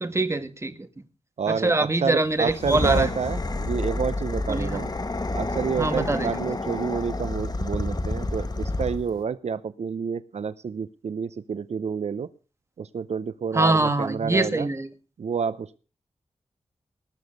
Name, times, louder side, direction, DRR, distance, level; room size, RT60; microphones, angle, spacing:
voice 1, 0.0-0.7 1.5-3.1 4.5-4.8 5.8-6.4 13.5-14.9, right 2 dB, 25° right, 10 dB, 1.6 m, -24 dB
voice 2, 1.4-4.9 5.3-12.3 12.8-14.7 15.2-15.8, right 6 dB, 75° right, 15 dB, 0.6 m, -29 dB
sound 1, 2.4-9.2, left 2 dB, 35° left, 1.5 m, -29 dB
19.0 x 7.0 x 6.5 m, 0.37 s
wide cardioid pair, 90°, 11 cm